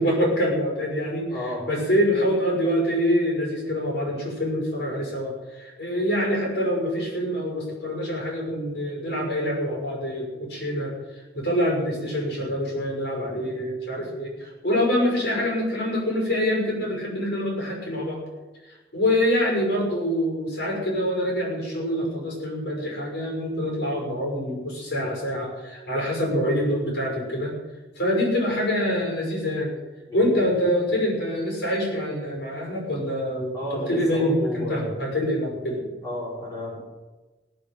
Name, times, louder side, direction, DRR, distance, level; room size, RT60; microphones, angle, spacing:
voice 1, 0.0-1.4 1.7-10.9 11.3-18.2 18.9-27.5 28.0-29.7 30.1-35.8, equal, 70° left, -1 dB, 6.3 m, -25 dB
voice 2, 1.3-1.8 30.1-30.3 33.5-34.9 36.0-36.8, left 1 dB, 20° left, -7 dB, 6.4 m, -32 dB
18.0 x 7.1 x 8.7 m, 1.2 s
head